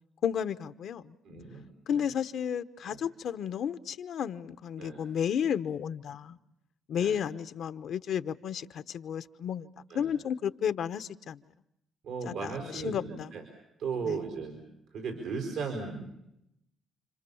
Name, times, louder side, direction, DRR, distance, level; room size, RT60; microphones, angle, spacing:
voice 1, 0.2-1.1 1.9-6.4 6.9-9.7 9.9-11.4 12.2-13.3 14.0-14.2, left 8 dB, 70° left, 0.9 m, -32 dB
voice 2, 1.2-2.0 2.8-3.0 4.8-5.0 6.9-7.2 9.9-10.1 12.0-13.4 13.8-14.6 14.9-16.2, right 5 dB, 85° right, 4.9 m, -37 dB
30.0 x 26.0 x 7.1 m
cardioid pair, 90°, 0 cm